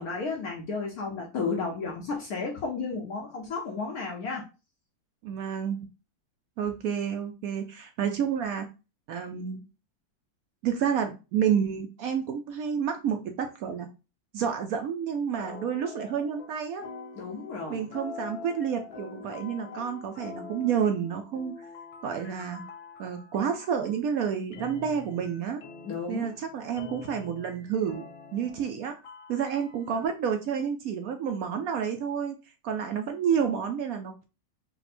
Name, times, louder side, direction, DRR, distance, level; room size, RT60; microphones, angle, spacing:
voice 1, 0.0-4.4 17.1-17.9 25.8-26.3, left 4 dB, 65° left, 0 dB, 1.0 m, -33 dB
voice 2, 5.2-5.9 6.6-8.6 9.1-9.6 10.6-13.9 14.3-16.9 17.7-21.5 22.0-22.6 23.0-25.6 26.1-28.0 28.3-28.9 29.3-32.3 32.6-34.3, right 7 dB, 80° right, 5 dB, 0.8 m, -29 dB
sound 1, 15.4-16.5 16.8-24.0 24.5-30.1, left 5 dB, 80° left, 1.6 m, -45 dB
4.2 x 2.1 x 4.2 m, 0.30 s
omnidirectional pair, 2.0 m